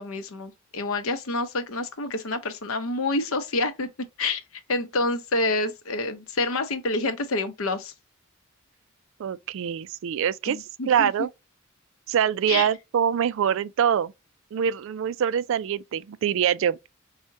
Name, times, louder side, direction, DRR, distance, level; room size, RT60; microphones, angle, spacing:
voice 1, 0.0-3.9 4.2-4.4 4.7-7.9 10.5-11.3 12.5-12.7, left 2 dB, 80° left, 0.7 m, -28 dB
voice 2, 9.2-10.6 10.9-11.3 12.1-14.1 14.5-16.9, right 8 dB, 65° right, 0.3 m, -24 dB
4.8 x 2.1 x 2.6 m
head